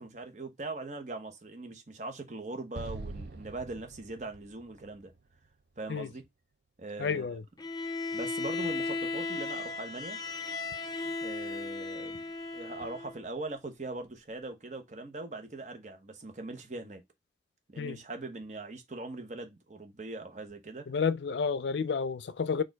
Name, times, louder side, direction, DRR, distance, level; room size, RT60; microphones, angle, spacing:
voice 1, 0.0-5.1 5.8-6.2 6.8-7.4 8.1-10.2 11.0-12.2 12.5-17.0 17.7-20.9, right 2 dB, 40° right, 0.9 m, -41 dB
Explosion, 2.7-6.0, right 3 dB, 70° right, 0.5 m, -44 dB
voice 2, 7.0-7.4 17.8-18.0 20.9-22.6, left 5 dB, 80° left, 0.5 m, -30 dB
Bowed string instrument, 7.6-13.2, left 3 dB, 20° left, 0.5 m, -36 dB
4.3 x 2.5 x 4.5 m
head